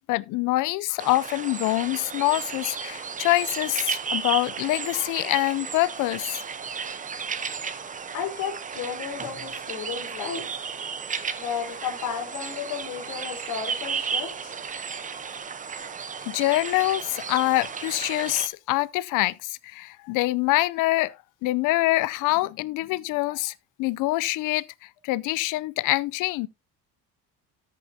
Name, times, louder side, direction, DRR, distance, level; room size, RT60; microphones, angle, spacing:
voice 1, 0.1-6.4 16.3-19.3 19.6-21.1 21.4-23.5 23.8-24.6 25.0-26.5, left 19 dB, 65° left, 0.5 m, -25 dB
sound 1, 1.0-18.5, right 6 dB, 25° right, 0.8 m, -34 dB
voice 2, 8.1-10.5 11.4-14.6, left 7 dB, 90° left, 3.7 m, -33 dB
13.5 x 6.7 x 2.7 m
cardioid pair, 115°, 34 cm